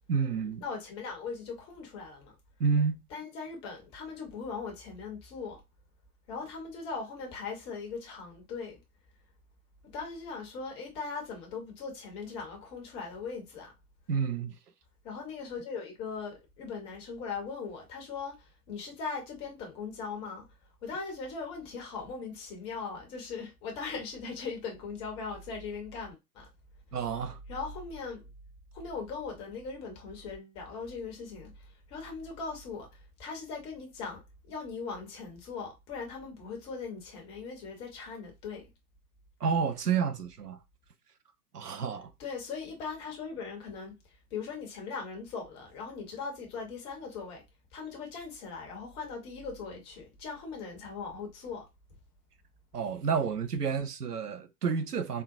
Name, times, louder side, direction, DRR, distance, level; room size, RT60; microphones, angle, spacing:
voice 1, 0.1-0.6 2.6-3.0 14.1-14.5 26.9-27.4 39.4-40.6 41.5-42.1 52.7-55.2, right 6 dB, 80° right, 0.6 m, -30 dB
voice 2, 0.6-2.4 3.1-5.6 6.3-8.8 9.9-13.7 15.0-20.5 20.8-26.5 27.5-28.3 28.7-38.7 42.2-47.4 47.7-51.7, left 5 dB, 15° left, 0.5 m, -39 dB
3.6 x 2.2 x 2.5 m
figure-of-eight pair, 105°, 46 cm